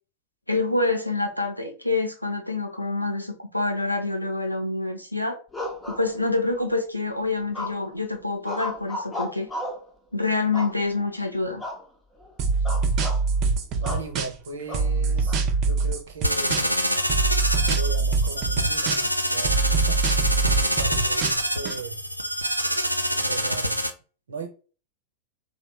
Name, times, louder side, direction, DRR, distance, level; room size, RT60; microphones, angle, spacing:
voice 1, 0.5-5.4 5.9-9.5 10.1-11.6, left 3 dB, 90° left, 0.6 m, -26 dB
sound 1, 5.5-6.6 7.5-8.0 8.4-9.9 10.5-11.1 11.6-11.8 12.1-12.3 12.6-13.2 13.8-14.1 14.7-15.4, left 1 dB, 10° left, 0.8 m, -34 dB
sound 2, 12.4-14.5 14.7-16.8 17.1-19.2 19.4-21.7, right 4 dB, 35° right, 0.6 m, -24 dB
voice 2, 13.7-16.8 17.5-20.0 20.6-22.1 23.1-23.8 24.3-24.5, right 4 dB, 70° right, 0.8 m, -37 dB
sound 3, 16.2-23.9, equal, 90° right, 0.3 m, -26 dB
3.2 x 2.7 x 3.0 m
figure-of-eight pair, 90°, 0 cm